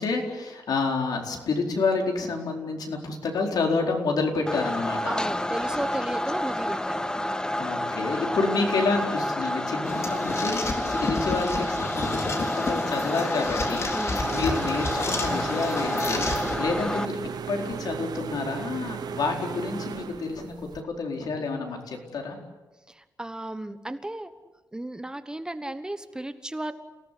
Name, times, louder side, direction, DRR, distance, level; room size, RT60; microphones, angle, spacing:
voice 1, 0.0-5.1 7.6-10.6 10.9-22.4, left 4 dB, 75° left, 2 dB, 4.5 m, -29 dB
sound 1, 4.5-17.0, left 1 dB, 10° left, 0.9 m, -29 dB
voice 2, 5.0-7.0 13.9-14.2 22.9-24.3 24.7-26.7, right 1 dB, 10° right, 10 dB, 1.2 m, -34 dB
sound 2, 9.8-16.6, left 3 dB, 45° left, 3.7 m, -31 dB
sound 3, 14.2-20.8, right 7 dB, 75° right, 1.0 m, -36 dB
30.0 x 18.0 x 8.5 m, 1.2 s
wide cardioid pair, 130°, 7 cm